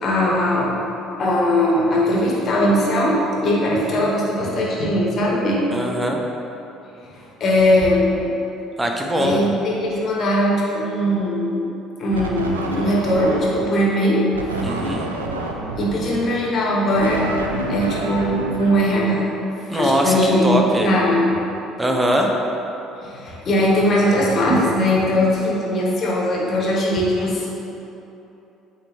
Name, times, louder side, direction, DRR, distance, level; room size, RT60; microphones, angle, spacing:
voice 1, 0.0-5.6 7.1-8.3 9.2-11.7 12.0-14.7 15.8-17.3 17.7-19.3 19.7-21.4 23.0-27.5, left 1 dB, 45° left, -4 dB, 1.4 m, -20 dB
voice 2, 5.7-6.2 8.8-9.4 14.6-15.1 19.7-20.9 21.8-22.3, right 1 dB, 15° right, 1 dB, 0.8 m, -21 dB
sound 1, 12.1-13.7 14.3-19.5, right 2 dB, 85° right, 0.4 m, -28 dB
8.8 x 3.5 x 3.1 m, 3.0 s
figure-of-eight pair, 55°, 0 cm